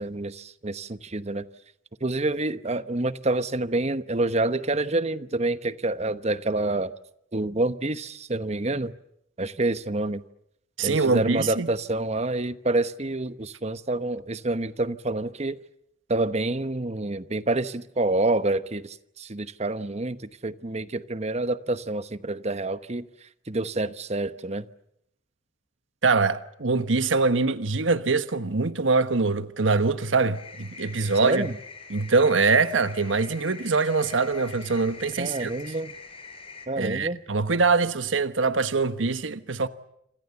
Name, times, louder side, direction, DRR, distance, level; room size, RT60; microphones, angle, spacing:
voice 1, 0.0-1.4 2.0-6.9 7.3-8.9 9.4-10.2 10.8-15.6 16.1-23.1 23.5-24.7 31.2-31.5 35.2-35.9 36.7-37.2, right 2 dB, 35° right, 1.0 m, -27 dB
voice 2, 10.8-11.7 26.0-31.5 31.9-35.5 36.8-39.7, right 4 dB, 90° right, 1.2 m, -23 dB
sound 1, 30.3-36.7, left 4 dB, 30° left, 5.5 m, -44 dB
27.5 x 27.0 x 7.0 m
head